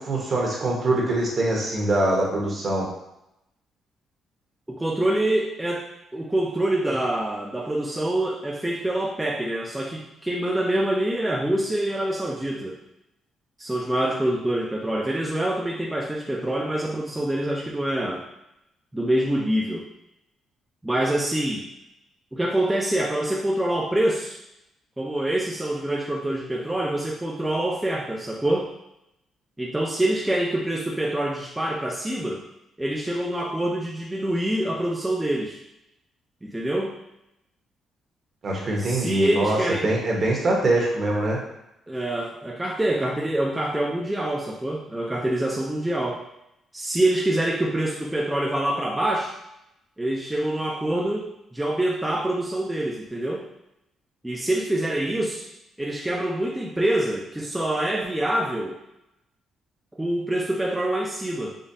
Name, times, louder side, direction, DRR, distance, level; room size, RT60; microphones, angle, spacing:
voice 1, 0.0-2.9 38.4-41.4, right 2 dB, 50° right, -2 dB, 1.1 m, -23 dB
voice 2, 4.7-12.8 13.6-18.2 18.9-19.9 20.8-21.7 22.3-24.4 25.0-28.7 29.6-32.4 32.8-35.6 36.4-37.0 38.8-39.9 41.9-46.2 46.7-49.3 50.0-53.5 54.2-55.5 55.8-58.8 60.0-61.6, right 1 dB, 10° right, -2 dB, 0.4 m, -25 dB
5.0 x 2.1 x 2.7 m, 0.86 s
cardioid pair, 90°, 0 cm